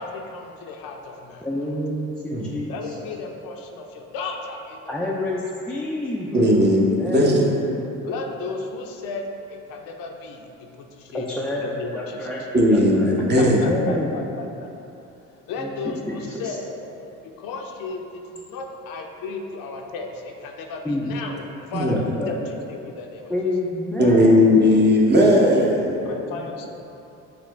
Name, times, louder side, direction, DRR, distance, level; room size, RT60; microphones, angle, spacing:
voice 1, 0.0-1.7 2.7-5.1 8.0-10.5 10.8-12.3 13.4-14.7 15.5-16.8 17.2-21.4 21.7-23.3 26.0-26.7, left 3 dB, 60° left, 2 dB, 0.6 m, -34 dB
voice 2, 1.4-2.7 4.9-6.4 6.9-7.5 11.1-11.7 11.9-12.4 13.0-14.3 15.6-15.7 16.1-16.6 20.8-21.1 21.9-22.4 23.3-24.7 26.0-26.5, left 1 dB, 5° left, -5 dB, 0.3 m, -28 dB
voice 3, 6.3-7.5 12.5-13.6 21.7-22.0 24.0-25.9, left 1 dB, 25° right, -2 dB, 0.7 m, -17 dB
5.7 x 2.1 x 3.2 m, 2.8 s
hypercardioid pair, 65°, 38 cm